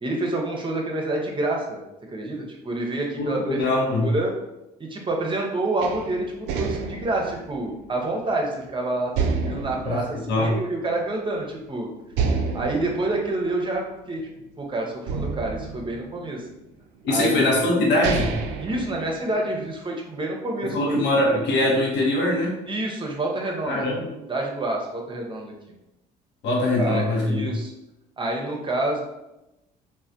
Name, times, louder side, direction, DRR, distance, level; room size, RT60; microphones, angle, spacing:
voice 1, 0.0-1.8 2.1-4.3 4.8-11.9 12.5-14.2 14.6-16.4 17.1-17.6 18.6-21.0 22.7-23.9 24.3-25.5 26.8-27.7 28.2-29.0, right 2 dB, 25° right, 0 dB, 0.7 m, -28 dB
voice 2, 3.2-4.1 9.8-10.5 17.0-18.4 20.6-22.5 23.7-24.1 26.4-27.5, left 1 dB, 60° left, -3 dB, 0.8 m, -22 dB
sound 1, 5.8-8.6 9.1-11.1 11.4-11.5 12.1-14.5 15.1-16.6 17.4-17.5 17.8-19.6, right 5 dB, 65° right, 0.4 m, -30 dB
3.2 x 2.2 x 2.5 m, 0.94 s
hypercardioid pair, 55°, 21 cm